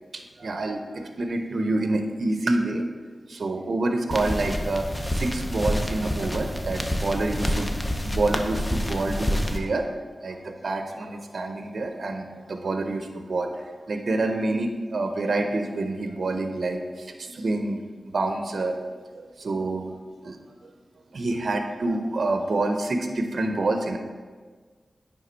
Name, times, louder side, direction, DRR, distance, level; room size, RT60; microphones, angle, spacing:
voice 1, 0.4-2.9 3.3-7.8 8.0-9.9 10.2-17.8 18.1-19.9 20.2-20.4 21.1-24.0, right 2 dB, 70° right, 5 dB, 0.6 m, -27 dB
sound 1, 4.1-9.6, equal, 20° left, 0.7 m, -28 dB
9.2 x 3.6 x 4.4 m, 1.5 s
cardioid pair, 50°, 0 cm